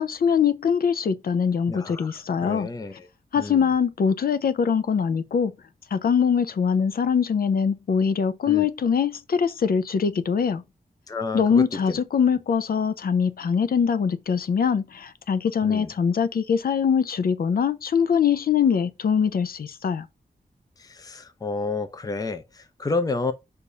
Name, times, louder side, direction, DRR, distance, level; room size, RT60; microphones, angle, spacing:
voice 1, 0.0-2.7 3.3-5.5 5.9-10.6 11.3-20.1, left 6 dB, 65° left, 0.6 m, -23 dB
voice 2, 1.7-3.1 3.4-3.6 8.5-8.7 11.1-12.0 15.6-15.9 20.8-23.3, left 3 dB, 25° left, 0.6 m, -30 dB
6.6 x 2.7 x 5.4 m
wide cardioid pair, 180°, 16 cm